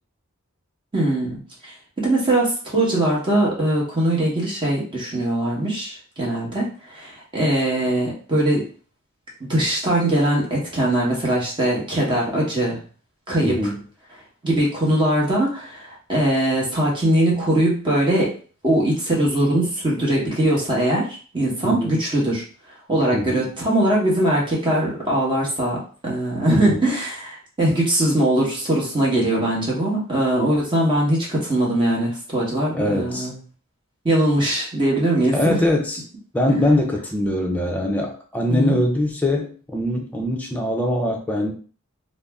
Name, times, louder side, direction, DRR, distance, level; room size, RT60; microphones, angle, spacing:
voice 1, 0.9-1.7 2.0-8.7 9.5-12.8 13.3-13.7 14.4-18.3 18.6-22.4 22.9-25.8 26.0-33.4 34.0-35.6 38.5-38.8, right 1 dB, 20° right, -4 dB, 1.0 m, -21 dB
voice 2, 13.4-13.8 21.6-22.0 23.1-23.5 26.5-26.9 32.7-33.3 35.3-36.0 36.3-41.5, left 1 dB, 5° left, 0 dB, 0.5 m, -22 dB
2.5 x 2.0 x 3.3 m, 0.40 s
head